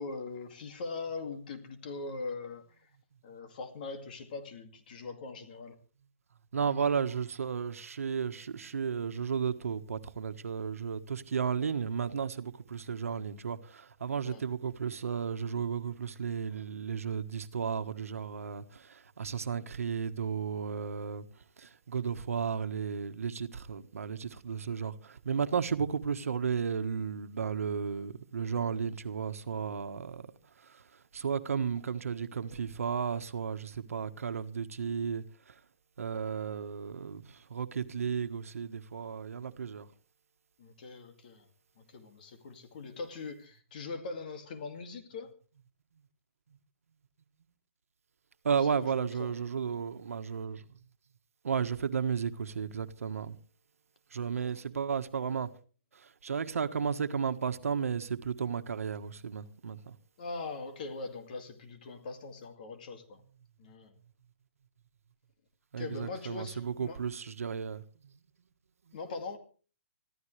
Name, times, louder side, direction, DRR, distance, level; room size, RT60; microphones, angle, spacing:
voice 1, 0.0-2.9 3.2-5.8 14.2-14.4 40.6-41.5 41.8-45.3 48.8-49.3 54.3-54.5 60.2-63.2 63.6-63.9 65.8-67.0 68.9-69.4, left 4 dB, 35° left, 2.3 m, -41 dB
voice 2, 6.5-35.6 36.0-39.9 46.5-46.6 48.4-50.7 51.4-53.4 54.1-55.5 55.9-59.9 65.7-68.2 68.9-69.0, right 6 dB, 85° right, 1.4 m, -34 dB
25.0 x 14.0 x 3.3 m
hypercardioid pair, 175°, 8 cm